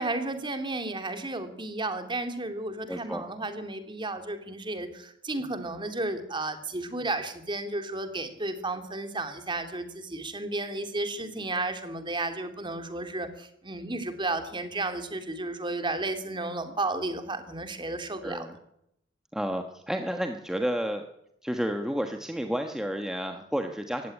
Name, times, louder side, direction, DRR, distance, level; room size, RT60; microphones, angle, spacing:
voice 1, 0.0-18.5, right 2 dB, 25° right, 8 dB, 2.5 m, -33 dB
voice 2, 2.9-3.2 18.2-18.5 19.3-21.0 21.4-24.1, equal, 5° right, 5 dB, 1.2 m, -31 dB
17.0 x 15.5 x 9.9 m, 0.76 s
head